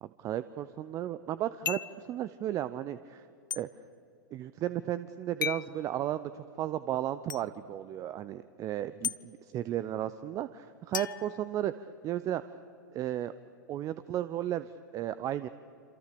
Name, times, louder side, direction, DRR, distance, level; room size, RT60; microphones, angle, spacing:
voice 1, 0.0-3.2 3.5-3.7 4.3-12.5 12.9-13.3 13.7-15.5, right 12 dB, 30° right, 14 dB, 0.7 m, -34 dB
sound 1, 1.7-2.0 3.5-3.6 5.4-5.7 7.3-7.4 9.0-9.2 10.9-12.0, left 8 dB, 75° left, 0.6 m, -35 dB
27.5 x 26.5 x 6.9 m, 2.7 s
figure-of-eight pair, 100°, 11 cm